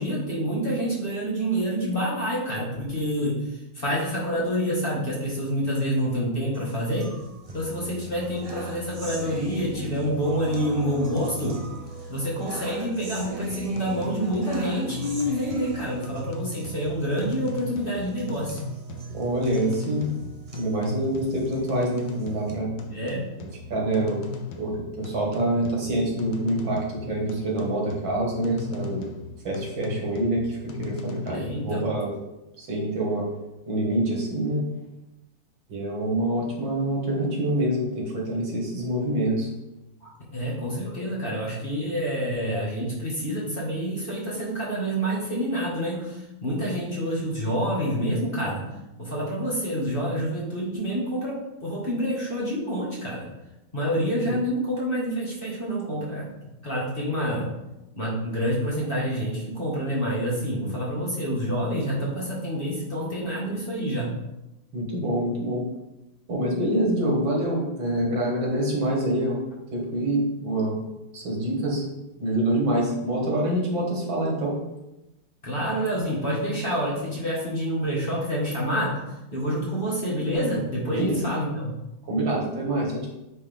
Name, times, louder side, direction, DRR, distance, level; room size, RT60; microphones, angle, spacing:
voice 1, 0.0-3.3 3.7-7.1 7.5-11.6 12.1-18.6 22.9-23.2 31.3-31.8 40.0-48.6 49.0-53.2 53.7-56.3 56.6-57.5 57.9-64.1 75.4-78.9 79.3-81.7, equal, 30° left, -5 dB, 1.7 m, -27 dB
sound 1, 6.5-22.5, right 3 dB, 60° right, 0.3 m, -40 dB
sound 2, 13.5-31.6, left 5 dB, 85° left, 1.6 m, -39 dB
voice 2, 19.1-20.1 20.6-22.7 23.7-24.2 24.6-29.1 29.4-32.1 32.6-33.3 33.7-34.6 35.7-39.5 54.2-54.4 64.7-65.6 66.3-69.4 69.7-70.8 71.1-71.8 72.2-74.5 80.9-81.2 82.1-83.1, right 1 dB, 80° right, -2 dB, 2.5 m, -26 dB
8.7 x 4.1 x 3.5 m, 0.95 s
omnidirectional pair, 2.1 m